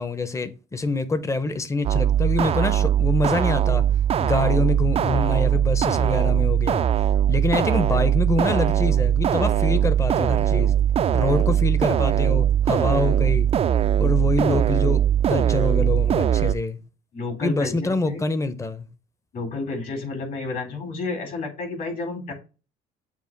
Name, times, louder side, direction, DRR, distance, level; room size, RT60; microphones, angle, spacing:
voice 1, 0.0-3.8 4.2-6.9 7.3-10.8 11.1-13.5 14.0-16.8 17.4-18.9, left 3 dB, 15° left, 0.8 m, -25 dB
sound 1, 1.8-16.5, right 10 dB, 35° right, 0.4 m, -20 dB
voice 2, 17.1-17.7 18.0-18.2 19.3-22.3, left 3 dB, 55° left, 3.6 m, -30 dB
7.3 x 2.5 x 5.3 m
cardioid pair, 110°, 17 cm